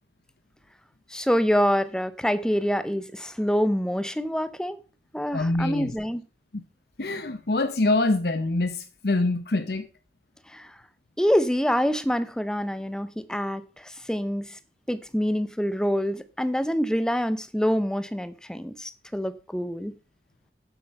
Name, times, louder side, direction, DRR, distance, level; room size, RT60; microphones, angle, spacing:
voice 1, 1.1-4.8 5.1-6.2 10.5-10.7 11.2-14.6 14.9-19.9, equal, 5° left, 0.6 m, -26 dB
voice 2, 5.3-5.9 6.5-6.6 7.0-9.9, left 2 dB, 60° left, 0.8 m, -25 dB
9.2 x 8.1 x 5.4 m
head